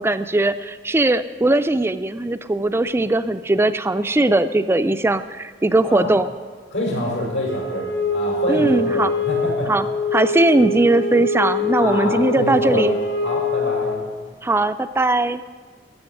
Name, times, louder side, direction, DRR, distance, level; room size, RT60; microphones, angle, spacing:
voice 1, 0.0-6.3 8.5-9.1 9.7-9.9 10.1-13.0 14.4-15.4, right 2 dB, 15° right, 10 dB, 0.4 m, -19 dB
voice 2, 6.7-9.7 11.8-12.8 13.2-14.1, left 1 dB, 90° left, -2 dB, 5.9 m, -26 dB
Wind instrument woodwind instrument, 7.5-14.3, left 2 dB, 70° left, 1.2 m, -24 dB
14.0 x 7.7 x 10.0 m, 1.5 s
head